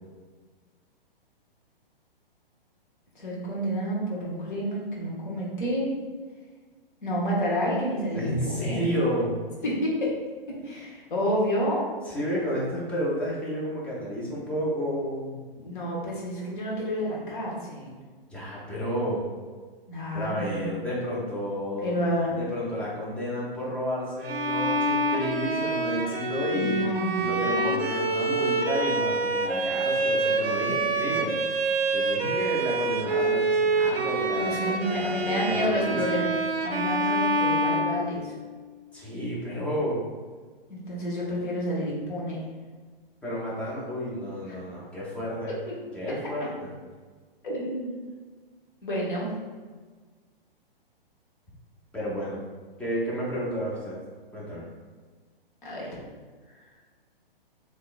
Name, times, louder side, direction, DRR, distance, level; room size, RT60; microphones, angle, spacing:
voice 1, 3.1-5.9 7.0-8.8 9.6-10.1 10.5-11.9 15.5-17.9 19.9-20.8 21.8-22.4 26.5-27.8 34.3-38.3 40.7-42.4 45.7-45.8 47.4-48.0 48.8-49.3 55.6-56.0, equal, 60° left, -5 dB, 1.2 m, -29 dB
voice 2, 8.1-9.3 12.1-15.4 18.3-19.2 20.1-21.9 22.4-26.8 27.2-31.4 31.9-36.3 38.9-40.0 43.2-45.5 45.9-46.7 51.9-52.4 52.8-54.0 54.3-54.7, equal, 5° left, -7 dB, 0.6 m, -31 dB
Bowed string instrument, 24.2-38.5, right 2 dB, 85° right, 0.5 m, -26 dB
3.7 x 2.9 x 2.4 m, 1.4 s
figure-of-eight pair, 120°, 29 cm